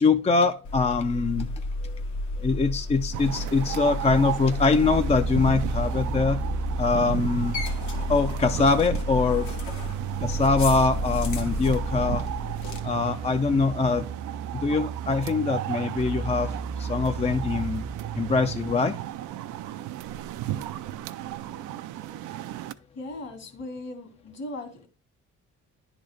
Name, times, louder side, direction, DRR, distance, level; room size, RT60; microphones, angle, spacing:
voice 1, 0.0-1.5 1.8-2.0 2.4-6.4 6.8-7.6 8.1-9.5 10.2-12.2 12.8-14.1 14.5-17.9 18.2-19.0, left 4 dB, 20° left, 0.4 m, -23 dB
sound 1, 0.6-12.8, left 1 dB, 75° left, 1.3 m, -31 dB
sound 2, 3.1-22.7, right 13 dB, 90° right, 0.5 m, -36 dB
sound 3, 4.9-18.7, right 6 dB, 35° right, 0.5 m, -34 dB
voice 2, 22.9-24.9, left 2 dB, 55° left, 2.0 m, -38 dB
10.0 x 3.9 x 3.2 m
cardioid pair, 90°, 30 cm